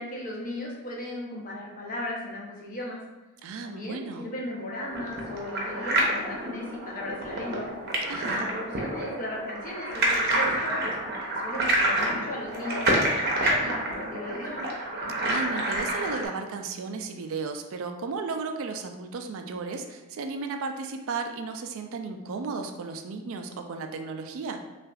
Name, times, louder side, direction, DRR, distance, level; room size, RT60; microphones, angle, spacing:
voice 1, 0.0-3.0 3.6-7.7 8.4-13.1 13.4-14.7, left 1 dB, 40° left, -3 dB, 0.8 m, -36 dB
voice 2, 3.4-4.3 8.1-8.5 15.2-24.6, right 4 dB, 65° right, 5 dB, 0.4 m, -34 dB
sound 1, 4.9-16.3, right 1 dB, 45° right, 0.7 m, -28 dB
5.6 x 2.5 x 2.4 m, 1.1 s
head